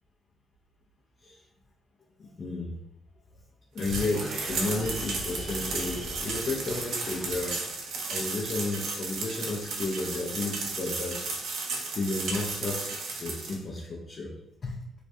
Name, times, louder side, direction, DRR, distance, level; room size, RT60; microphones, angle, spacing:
voice 1, 2.2-2.8 3.7-7.6 8.1-11.2 11.9-12.9 13.2-14.3 14.6-14.8, left 3 dB, 45° left, -3 dB, 0.4 m, -32 dB
sound 1, 3.8-7.7, equal, 50° right, 0.8 m, -39 dB
sound 2, 3.8-13.6, right 3 dB, 75° right, 0.5 m, -34 dB
2.3 x 2.2 x 2.6 m, 0.82 s
cardioid pair, 90°, 0 cm